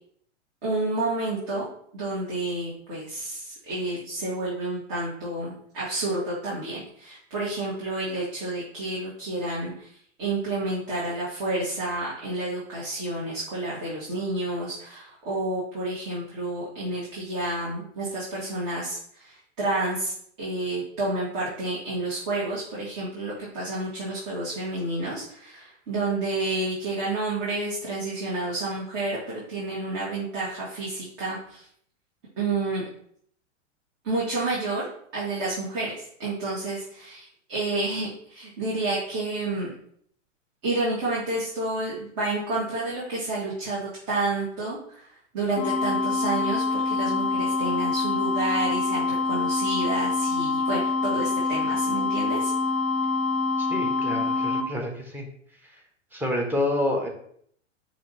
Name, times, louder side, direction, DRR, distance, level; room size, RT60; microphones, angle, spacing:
voice 1, 0.6-1.6 1.9-9.9 10.2-31.7 32.4-32.8 34.0-34.9 35.1-39.7 40.6-45.1 45.3-52.5, right 2 dB, 40° right, -7 dB, 1.6 m, -30 dB
sound 1, 45.6-54.6, left 3 dB, 30° left, 0.5 m, -25 dB
voice 2, 53.6-55.3 56.1-57.1, left 1 dB, 5° right, 1 dB, 0.8 m, -28 dB
5.3 x 2.7 x 3.2 m, 0.64 s
hypercardioid pair, 110°, 37 cm